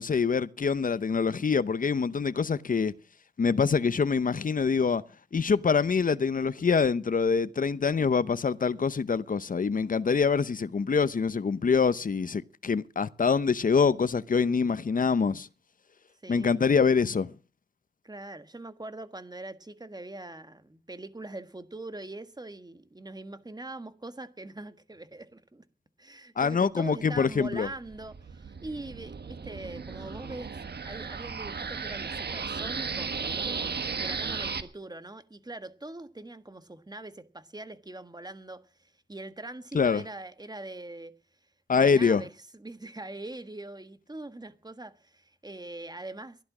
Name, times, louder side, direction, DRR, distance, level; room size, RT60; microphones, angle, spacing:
voice 1, 0.0-2.9 3.4-5.0 5.3-15.5 16.3-17.3 26.4-27.7 39.7-40.0 41.7-42.2, left 5 dB, 50° left, 0.8 m, -25 dB
voice 2, 16.2-16.6 18.0-25.6 26.0-30.5 30.8-33.6 34.0-41.1 41.7-46.4, right 2 dB, 20° right, 1.5 m, -42 dB
sound 1, 27.3-34.6, right 5 dB, 65° right, 1.5 m, -35 dB
15.5 x 11.5 x 6.1 m
wide cardioid pair, 75°, 18 cm